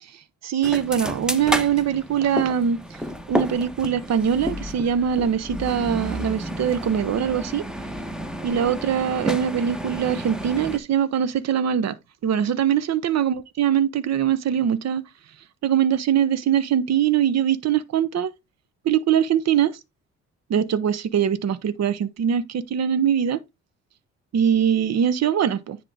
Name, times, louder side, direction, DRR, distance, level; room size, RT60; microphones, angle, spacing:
voice 1, 0.0-2.8 3.3-7.6 8.4-12.0 12.2-15.0 15.6-18.3 18.8-19.7 20.5-23.4 24.3-25.8, right 9 dB, 60° right, 1.0 m, -22 dB
sound 1, 0.6-10.8, equal, ahead, 1.3 m, -31 dB
9.9 x 3.8 x 4.9 m
cardioid pair, 90°, 30 cm